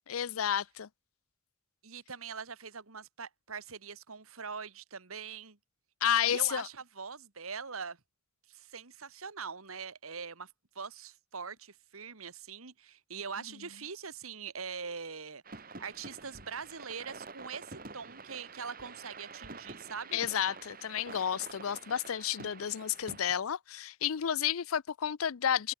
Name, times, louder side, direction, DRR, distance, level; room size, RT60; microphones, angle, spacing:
voice 1, 0.1-0.9 6.0-6.7 20.1-25.7, left 9 dB, 85° left, 0.5 m, -31 dB
voice 2, 1.8-5.6 6.2-8.0 8.5-10.5 10.8-20.2, right 5 dB, 90° right, 1.9 m, -43 dB
sound 1, 15.4-23.4, right 3 dB, 45° right, 4.2 m, -48 dB
head